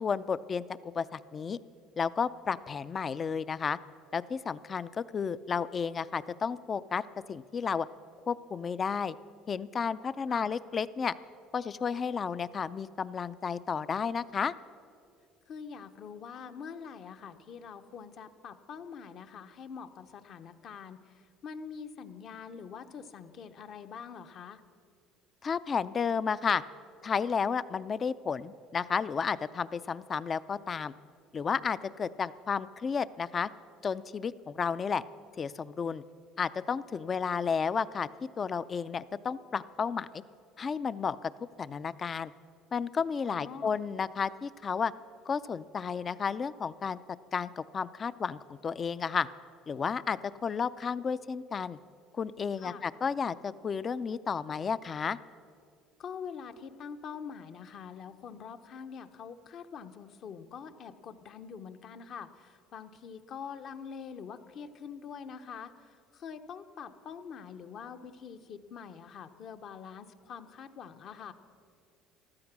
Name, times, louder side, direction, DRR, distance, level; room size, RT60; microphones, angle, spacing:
voice 1, 0.0-1.6 2.0-3.8 4.1-7.0 7.3-7.9 8.3-9.2 9.5-11.1 11.5-14.5 25.4-26.6 27.0-30.9 31.3-33.5 33.8-35.0 35.4-36.0 36.4-38.1 38.4-40.1 40.6-41.3 41.6-42.3 42.7-44.9 45.3-47.0 47.3-49.3 49.7-51.8 52.1-55.2, left 6 dB, 30° left, 17 dB, 0.4 m, -32 dB
voice 2, 15.5-24.6 43.2-43.7 52.6-52.8 56.0-71.3, left 6 dB, 50° left, 8 dB, 0.8 m, -45 dB
14.5 x 12.5 x 6.1 m, 2.3 s
supercardioid pair, 110°, 0 cm